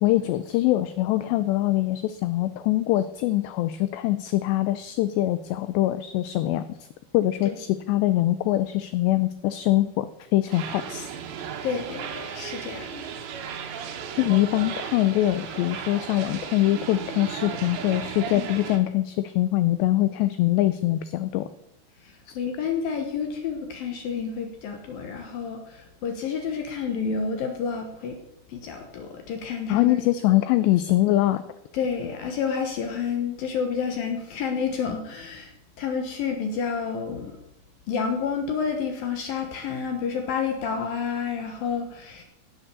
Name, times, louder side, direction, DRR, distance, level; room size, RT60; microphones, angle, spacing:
voice 1, 0.0-6.8 7.1-11.1 14.2-21.5 22.3-22.4 29.7-31.4, left 15 dB, 85° left, 13 dB, 2.5 m, -23 dB
sound 1, 10.5-18.8, right 7 dB, 70° right, 3.3 m, -35 dB
voice 2, 11.6-13.0 18.3-18.4 22.0-28.2 28.5-30.0 31.7-35.5 35.8-37.3 37.9-42.2, left 6 dB, 70° left, 4 dB, 2.3 m, -29 dB
16.0 x 7.4 x 6.9 m, 0.88 s
omnidirectional pair, 5.6 m